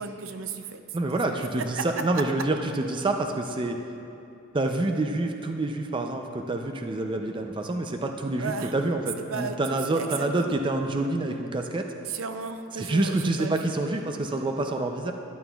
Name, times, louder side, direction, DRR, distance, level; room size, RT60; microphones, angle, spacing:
voice 1, 0.0-0.8 1.1-1.5 8.4-8.7 9.3-9.6 9.9-10.6 12.1-13.6, right 5 dB, 80° right, 7 dB, 0.5 m, -35 dB
voice 2, 0.9-3.8 4.5-11.9 12.8-15.1, right 2 dB, 25° right, 4 dB, 0.4 m, -27 dB
12.5 x 11.0 x 2.3 m, 2.7 s
head